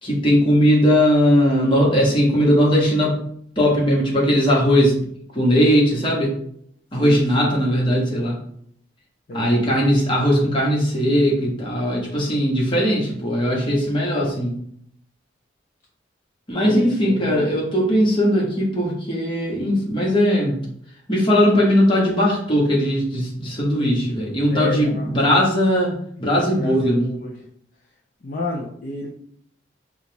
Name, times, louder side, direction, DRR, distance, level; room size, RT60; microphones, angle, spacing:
voice 1, 0.0-3.2 3.6-5.0 5.3-6.4 6.9-8.4 9.3-14.6 16.5-20.6 21.1-27.0, equal, 25° left, -4 dB, 1.1 m, -19 dB
voice 2, 7.0-7.5 9.3-9.5 16.6-17.5 24.5-25.1 26.5-27.5 28.2-29.1, left 2 dB, 45° left, -2 dB, 0.5 m, -30 dB
5.2 x 2.4 x 2.9 m, 0.66 s
head